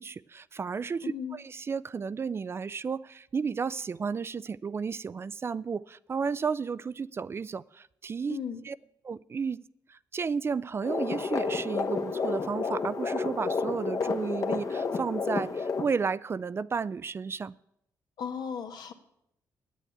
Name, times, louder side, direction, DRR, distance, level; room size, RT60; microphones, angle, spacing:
voice 1, 0.0-8.4 8.6-8.8 9.0-9.6 9.9-17.5, right 5 dB, 35° right, 18 dB, 0.3 m, -33 dB
voice 2, 1.0-1.4 8.3-8.6 18.2-18.9, left 7 dB, 70° left, 7 dB, 1.2 m, -36 dB
sound 1, 10.8-15.9, left 4 dB, 50° left, 1.1 m, -30 dB
9.2 x 8.6 x 8.0 m, 0.76 s
cardioid pair, 80°, 7 cm